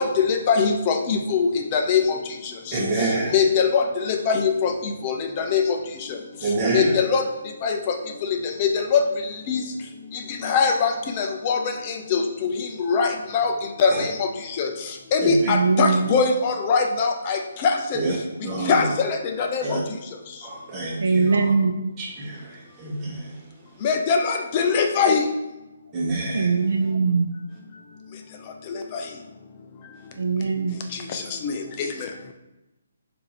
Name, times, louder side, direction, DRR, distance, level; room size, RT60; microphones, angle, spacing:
voice 1, 0.0-2.2 2.4-6.2 6.7-7.2 7.6-7.9 8.2-9.0 9.3-9.6 10.1-13.5 13.8-18.0 18.7-19.8 23.8-25.2 28.7-29.0 30.9-32.1, left 5 dB, 30° left, 4 dB, 0.4 m, -23 dB
voice 2, 2.7-3.3 6.4-6.9 13.9-14.0 15.2-15.4 17.9-18.1 18.4-18.8 19.6-19.8 20.4-21.3 22.0-22.4 22.8-23.2 25.9-26.5, right 2 dB, 20° right, -2 dB, 1.0 m, -26 dB
voice 3, 15.4-16.1 19.6-19.7 21.0-21.7 26.3-27.3 30.1-30.8, right 4 dB, 85° right, 6 dB, 0.5 m, -21 dB
6.9 x 2.6 x 2.9 m, 0.99 s
hypercardioid pair, 165°, 0 cm